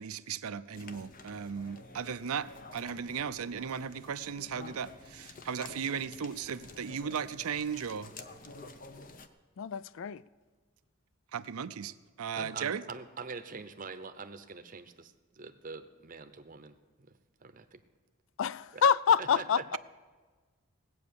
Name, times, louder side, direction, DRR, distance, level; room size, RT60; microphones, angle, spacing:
voice 1, 0.0-8.1 11.3-12.8, right 7 dB, 85° right, 0.5 m, -36 dB
sound 1, 0.7-9.3, left 3 dB, 40° left, 0.7 m, -50 dB
voice 2, 9.6-10.2 18.4-19.8, left 7 dB, 60° left, 0.3 m, -27 dB
voice 3, 12.3-16.7 17.4-17.8 18.7-18.8 19.2-19.4, right 4 dB, 40° right, 0.8 m, -44 dB
18.0 x 8.6 x 6.9 m
head